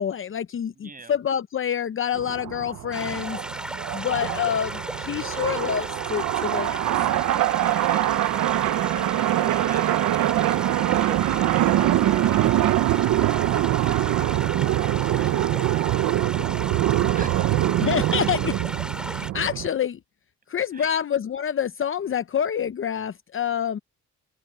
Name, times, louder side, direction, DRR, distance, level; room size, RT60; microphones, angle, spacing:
voice 1, 0.0-3.4 3.9-6.8 17.8-18.6 19.0-20.0 20.5-23.8, left 8 dB, 45° left, 0.8 m, -27 dB
voice 2, 0.7-1.2 7.6-9.0 9.4-12.5 13.0-14.7 15.0-16.6 17.1-17.9 20.7-21.0, right 4 dB, 30° right, 6.5 m, -45 dB
sound 1, 2.2-19.7, right 14 dB, 80° right, 1.0 m, -23 dB
sound 2, 2.9-19.3, equal, 5° right, 7.1 m, -35 dB
open air
cardioid pair, 90°, 30 cm